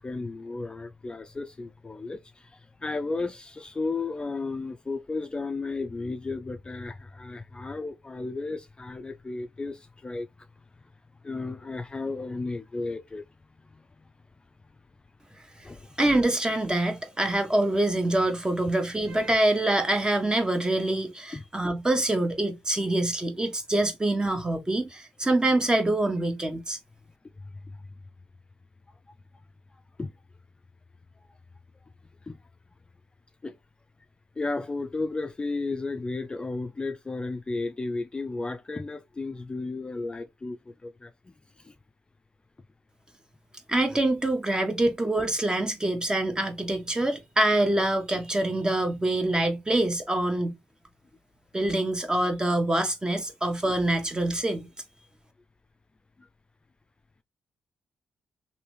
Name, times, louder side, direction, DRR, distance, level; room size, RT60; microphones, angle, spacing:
voice 1, 0.0-2.2 2.8-10.3 11.2-13.2 15.6-15.8 21.3-21.4 30.0-30.1 32.3-32.4 33.4-33.5 34.4-41.1 41.6-41.7, left 3 dB, 25° left, 0.3 m, -33 dB
voice 2, 16.0-26.8 43.7-50.5 51.5-54.7, right 1 dB, 20° right, 1.0 m, -25 dB
2.9 x 2.7 x 3.1 m
supercardioid pair, 45°, 4 cm